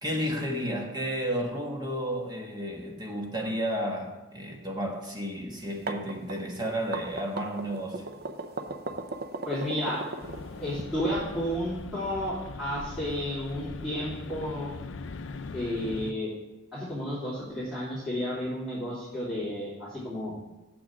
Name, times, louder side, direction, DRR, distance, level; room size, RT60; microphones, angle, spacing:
voice 1, 0.0-8.0, equal, 20° right, 0 dB, 1.3 m, -32 dB
sound 1, 5.6-10.8, right 3 dB, 50° right, 0.7 m, -36 dB
voice 2, 9.5-10.0 10.6-14.7 15.5-16.3 16.7-20.3, equal, 5° right, -13 dB, 3.1 m, -32 dB
sound 2, 10.2-16.1, left 3 dB, 70° left, 0.5 m, -41 dB
7.4 x 6.2 x 7.3 m, 1.1 s
head